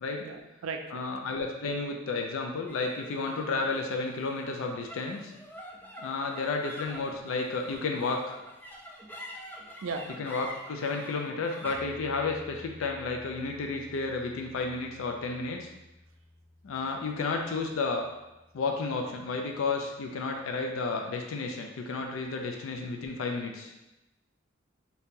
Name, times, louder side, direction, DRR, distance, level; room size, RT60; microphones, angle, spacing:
voice 1, 0.2-1.0 8.7-8.8 9.8-10.1 21.4-21.5 22.4-22.5, right 4 dB, 80° right, 5 dB, 0.4 m, -37 dB
voice 2, 0.9-5.3 6.0-8.2 10.2-15.7 16.6-18.1 18.5-23.7, left 3 dB, 80° left, 3 dB, 0.4 m, -32 dB
sound 1, 2.7-19.2, equal, 10° left, 0.3 m, -48 dB
2.8 x 2.7 x 3.6 m, 0.97 s
head